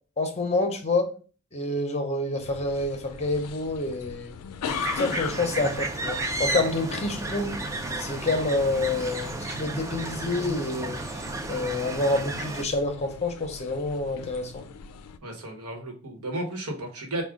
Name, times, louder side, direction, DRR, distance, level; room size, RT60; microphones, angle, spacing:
voice 1, 0.2-1.1 1.5-4.3 5.0-7.6 8.0-11.2 11.5-14.6, left 2 dB, 30° left, 5 dB, 0.7 m, -28 dB
sound 1, 2.4-15.2, left 6 dB, 80° left, 0.4 m, -40 dB
sound 2, 4.6-12.6, right 2 dB, 15° right, 0.4 m, -33 dB
voice 2, 15.2-17.2, right 1 dB, 75° right, 2 dB, 1.1 m, -33 dB
4.8 x 2.2 x 3.6 m, 0.38 s
head